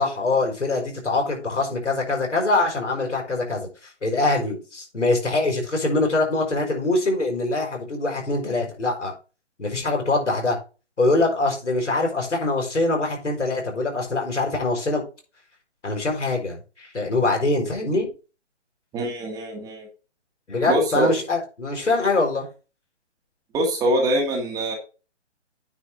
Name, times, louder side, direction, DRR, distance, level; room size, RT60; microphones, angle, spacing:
voice 1, 0.0-9.1 9.6-10.6 11.0-15.0 15.8-18.1 20.5-22.5, left 2 dB, 80° left, 1 dB, 5.1 m, -23 dB
voice 2, 18.9-19.9 20.7-21.1 23.5-24.8, right 1 dB, 10° right, 1 dB, 1.4 m, -23 dB
9.4 x 3.9 x 6.5 m, 0.33 s
figure-of-eight pair, 145°, 36 cm